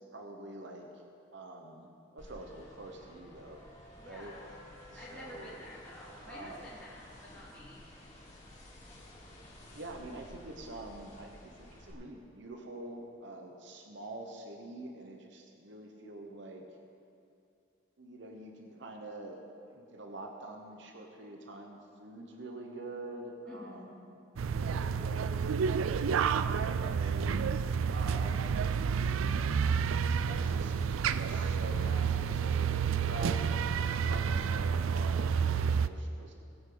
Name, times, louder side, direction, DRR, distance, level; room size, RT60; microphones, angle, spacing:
voice 1, 0.1-0.9 1.3-3.6 4.0-4.3 4.9-5.6 6.3-6.7 9.7-16.7 18.0-23.9 24.4-25.4 26.3-27.4 27.9-28.7 29.2-29.6 30.1-33.8 34.1-36.3, right 2 dB, 60° right, 2 dB, 1.1 m, -46 dB
sound 1, 2.2-11.9, left 1 dB, 30° left, 3.1 m, -53 dB
voice 2, 4.0-4.5 4.9-7.8 23.5-23.9, left 1 dB, 10° left, -12 dB, 3.0 m, -50 dB
sound 2, 24.4-35.9, right 6 dB, 85° right, 0.4 m, -30 dB
21.0 x 8.8 x 4.0 m, 2.5 s
head